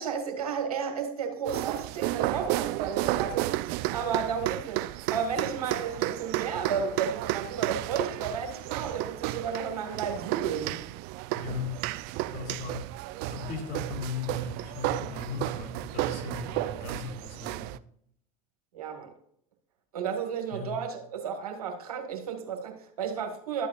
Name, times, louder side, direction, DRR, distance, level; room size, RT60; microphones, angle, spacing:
voice 1, 0.0-10.9 18.7-19.1 19.9-23.7, right 6 dB, 90° right, 4 dB, 1.9 m, -33 dB
sound 1, 1.5-17.8, right 17 dB, 60° right, 0.5 m, -32 dB
voice 2, 11.3-11.8 12.3-12.8 13.3-17.7 20.5-20.7, left 5 dB, 50° left, 1 dB, 3.7 m, -37 dB
13.0 x 8.3 x 2.5 m, 0.67 s
hypercardioid pair, 85°, 18 cm